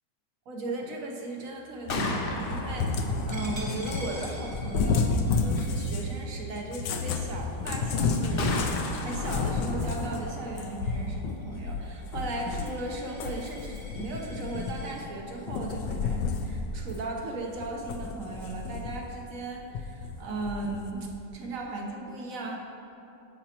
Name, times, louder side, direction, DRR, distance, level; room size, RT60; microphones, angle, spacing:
voice 1, 0.5-21.1 21.3-22.6, right 2 dB, 55° right, 0 dB, 1.2 m, -37 dB
Gunshot gunfire, 1.6-15.5, left 2 dB, 60° left, 0.6 m, -39 dB
Cat, 1.9-6.1 6.7-12.8 13.2-15.1 15.5-16.5 16.9-17.0 17.6-19.1 19.7-20.9, left 4 dB, 80° left, 1.3 m, -31 dB
Coin (dropping), 3.3-8.7 9.2-9.5 9.8-15.0, right 1 dB, 25° right, 0.6 m, -48 dB
10.0 x 8.0 x 2.9 m, 2.9 s
omnidirectional pair, 1.9 m